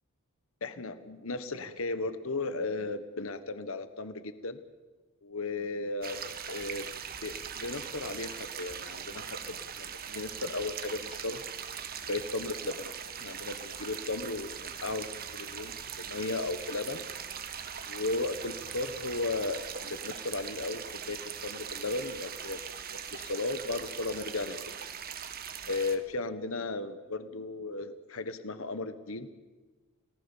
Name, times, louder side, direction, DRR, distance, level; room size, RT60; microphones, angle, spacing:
voice 1, 0.6-4.6 5.2-6.9 7.2-11.4 12.1-17.0 17.9-22.6 22.9-24.6 25.7-29.3, left 3 dB, 65° left, 11 dB, 1.3 m, -35 dB
sound 1, 6.0-26.0, right 7 dB, 45° right, 1.5 m, -41 dB
29.5 x 19.0 x 7.2 m, 1.3 s
head